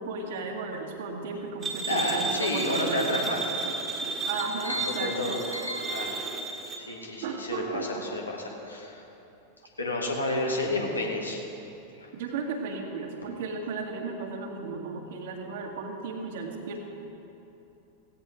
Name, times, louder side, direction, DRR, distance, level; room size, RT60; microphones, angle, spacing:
voice 1, 0.0-3.2 4.0-5.3 7.2-8.1 12.1-16.8, right 4 dB, 55° right, 2 dB, 2.0 m, -35 dB
sound 1, 1.6-6.8, right 4 dB, 20° right, 1.9 m, -33 dB
voice 2, 1.9-3.5 4.6-6.2 6.8-9.0 9.8-11.4 12.0-12.1, left 1 dB, 80° left, 0 dB, 2.2 m, -30 dB
16.5 x 16.5 x 3.8 m, 3.0 s
figure-of-eight pair, 90°, 0 cm